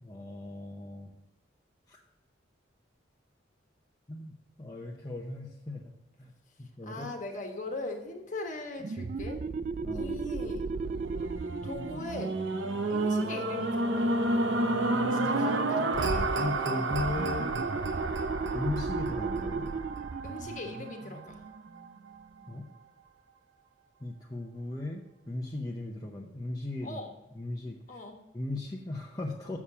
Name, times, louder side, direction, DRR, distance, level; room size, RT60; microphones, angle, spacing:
voice 1, 0.0-1.1 1.9-2.0 4.1-6.3 6.6-7.1 9.8-10.1 16.4-17.6 18.5-19.7 22.5-22.7 24.0-27.0 27.4-28.0 28.3-29.6, left 2 dB, 20° left, -2 dB, 0.7 m, -37 dB
voice 2, 6.8-9.4 9.9-10.7 11.6-12.4 12.9-14.2 15.1-15.9 20.2-21.4 26.8-27.2 27.9-28.2, left 2 dB, 40° left, 3 dB, 1.3 m, -39 dB
sound 1, 8.8-14.1 17.1-22.4, right 4 dB, 40° right, 0.3 m, -36 dB
sound 2, 10.9-21.2 21.8-21.9, right 2 dB, 75° right, 0.8 m, -30 dB
7.2 x 6.5 x 5.5 m, 0.94 s
head